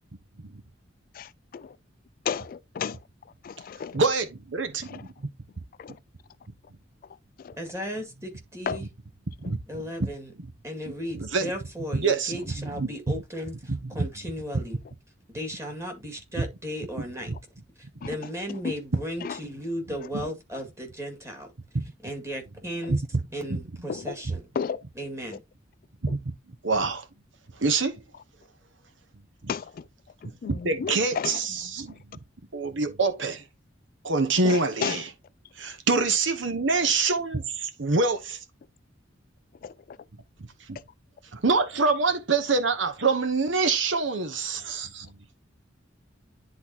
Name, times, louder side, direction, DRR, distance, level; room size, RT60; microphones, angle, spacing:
voice 1, 1.1-1.8 2.2-3.0 3.2-4.0 4.8-5.1 7.0-7.6 8.7-8.8 9.4-9.5 18.0-18.7 19.2-19.4 22.8-22.9 23.9-24.2 24.5-24.8 26.1-26.2 29.5-29.9 30.2-31.5 31.9-32.0 34.4-35.0 39.6-40.0, left 6 dB, 45° left, 0.3 m, -34 dB
voice 2, 3.9-5.1 9.4-9.6 10.0-10.1 11.2-11.5 11.9-12.9 13.7-14.1 21.7-21.8 22.9-23.0 23.5-23.6 26.0-26.2 26.6-27.1 27.6-28.0 30.5-32.0 32.5-33.4 34.0-35.0 35.6-38.4 40.7-40.8 41.3-45.1, right 4 dB, 70° right, 1.0 m, -25 dB
voice 3, 7.6-8.8 9.7-10.3 10.6-14.8 15.3-17.3 17.8-21.5 22.0-23.0 23.3-24.4 25.0-25.4, equal, 15° right, 2.0 m, -35 dB
10.5 x 4.0 x 2.9 m
head